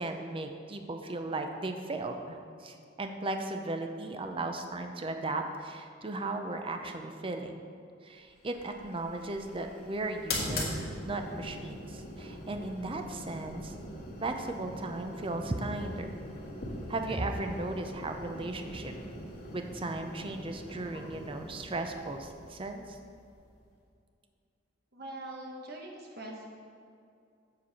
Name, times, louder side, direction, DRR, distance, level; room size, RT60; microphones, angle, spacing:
voice 1, 0.0-7.5 8.0-13.7 14.2-16.1 16.9-18.9 19.5-23.0, right 2 dB, 30° right, 5 dB, 0.6 m, -36 dB
sound 1, 8.4-23.7, left 1 dB, 55° left, 1.9 m, -41 dB
voice 2, 24.9-26.5, right 1 dB, 60° right, 0 dB, 1.3 m, -42 dB
7.5 x 4.7 x 6.9 m, 2.4 s
head